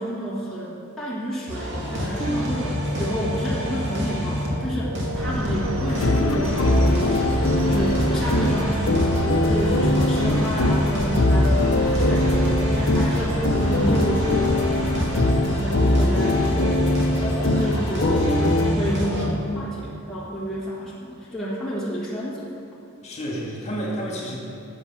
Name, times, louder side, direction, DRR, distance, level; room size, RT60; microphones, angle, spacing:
voice 1, 0.0-22.5, equal, ahead, -8 dB, 1.5 m, -30 dB
sound 1, 1.5-19.3, equal, 60° right, 2.2 m, -27 dB
sound 2, 5.1-15.3, right 1 dB, 85° right, 0.9 m, -32 dB
sound 3, 5.9-18.7, left 1 dB, 65° left, 0.7 m, -22 dB
voice 2, 23.0-24.4, equal, 35° left, -3 dB, 2.1 m, -31 dB
11.5 x 7.5 x 5.8 m, 2.8 s
head